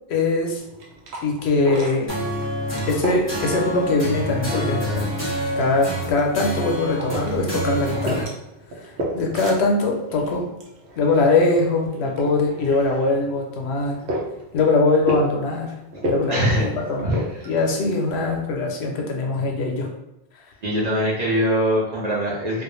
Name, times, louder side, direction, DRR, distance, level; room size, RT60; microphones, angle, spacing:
voice 1, 0.1-0.6 1.2-2.1 2.9-5.3 5.6-8.3 8.8-10.5 11.0-14.0 14.5-15.7 16.0-17.2 17.4-19.9, left 3 dB, 80° left, 1 dB, 0.8 m, -22 dB
sound 1, 0.6-18.4, right 1 dB, 85° right, 0.9 m, -34 dB
sound 2, 2.1-8.2, equal, 15° left, 0.6 m, -27 dB
voice 2, 16.3-16.7 17.0-17.2 20.6-22.6, equal, 45° right, -6 dB, 0.7 m, -22 dB
2.3 x 2.1 x 3.0 m, 0.91 s
omnidirectional pair, 1.1 m